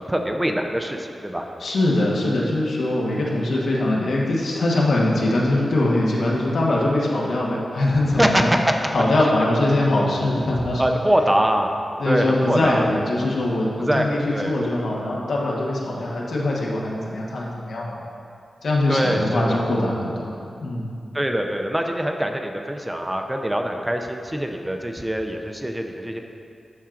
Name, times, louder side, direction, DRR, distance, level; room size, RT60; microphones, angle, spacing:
voice 1, 0.0-1.5 8.2-8.7 10.8-11.7 12.0-12.9 13.8-14.6 18.9-19.6 21.1-26.2, equal, 15° right, 3 dB, 0.6 m, -23 dB
voice 2, 1.6-8.5 8.9-10.8 12.0-18.0 18.6-20.9, left 1 dB, 85° left, -4 dB, 1.1 m, -22 dB
12.5 x 4.4 x 2.5 m, 2.5 s
cardioid pair, 65°, 0 cm